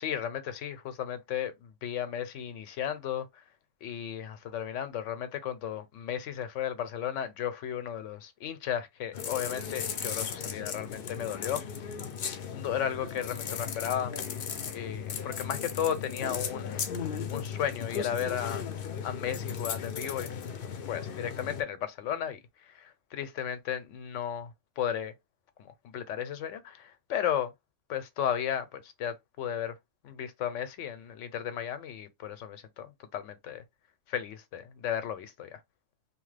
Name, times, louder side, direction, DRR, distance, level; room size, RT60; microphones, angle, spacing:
voice 1, 0.0-3.4 3.8-12.0 12.5-14.1 14.7-16.9 17.3-18.6 19.0-20.4 20.9-25.1 25.6-27.5 27.9-29.8 30.0-33.6 34.1-35.6, left 9 dB, 85° left, 1.0 m, -34 dB
sound 1, 9.1-21.6, left 7 dB, 60° left, 0.7 m, -36 dB
2.9 x 2.1 x 3.2 m
omnidirectional pair, 1.2 m